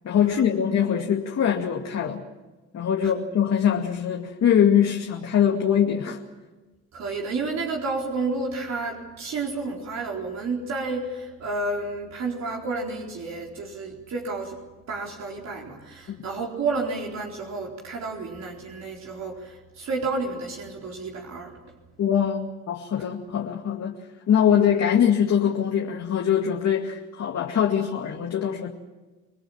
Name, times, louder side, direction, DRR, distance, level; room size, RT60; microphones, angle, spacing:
voice 1, 0.0-2.2 2.7-6.2 16.1-16.2 22.0-24.0 24.3-28.7, left 8 dB, 60° left, 1 dB, 2.3 m, -23 dB
voice 2, 6.9-14.6 14.9-21.6, right 3 dB, 60° right, -1 dB, 4.2 m, -31 dB
27.5 x 20.0 x 7.3 m, 1.2 s
cardioid pair, 90°, 30 cm